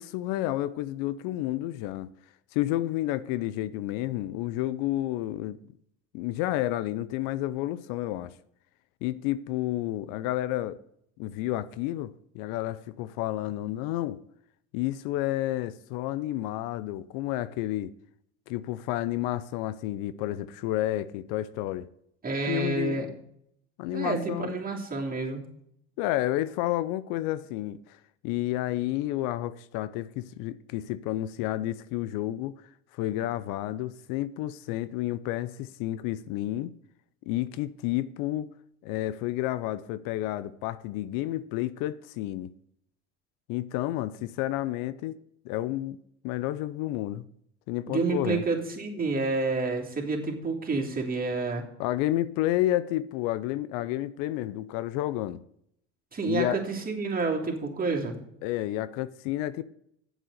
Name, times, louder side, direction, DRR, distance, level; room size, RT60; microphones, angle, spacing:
voice 1, 0.0-2.1 2.5-5.6 6.1-8.3 9.0-10.8 11.2-14.2 14.7-17.9 18.5-21.9 22.5-23.2 23.8-24.6 26.0-28.0 28.2-32.5 32.9-36.7 37.3-38.5 38.8-42.5 43.5-45.1 45.4-46.0 46.2-47.3 47.7-48.4 51.8-55.4 56.2-56.6 58.4-59.6, left 14 dB, 65° left, 0.6 m, -30 dB
voice 2, 22.2-23.1 23.9-25.4 47.9-51.6 56.1-58.2, right 3 dB, 25° right, 3.1 m, -29 dB
8.2 x 7.6 x 7.9 m
hypercardioid pair, 75°, 35 cm